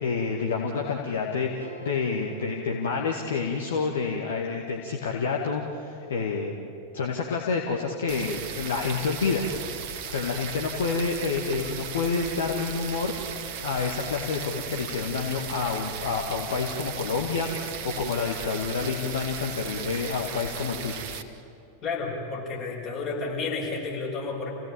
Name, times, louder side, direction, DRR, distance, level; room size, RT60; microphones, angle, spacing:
voice 1, 0.0-6.7 6.9-9.5 10.1-13.1 13.6-21.0, left 5 dB, 60° left, 1 dB, 1.9 m, -28 dB
sound 1, 1.6-3.9, right 3 dB, 80° left, 2.4 m, -47 dB
sound 2, 8.1-21.2, right 7 dB, 45° right, 1.5 m, -37 dB
voice 2, 21.8-24.5, left 4 dB, 35° left, -2 dB, 6.1 m, -31 dB
28.0 x 17.0 x 8.7 m, 2.7 s
figure-of-eight pair, 90°, 0 cm